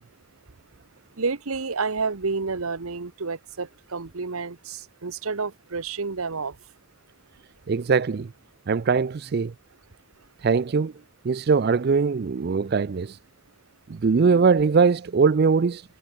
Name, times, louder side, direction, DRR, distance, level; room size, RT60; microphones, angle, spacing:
voice 1, 1.2-6.5, right 4 dB, 80° right, 1.1 m, -30 dB
voice 2, 7.7-8.3 8.7-9.5 10.4-10.9 11.2-13.2 13.9-15.8, right 5 dB, 45° right, 0.4 m, -21 dB
head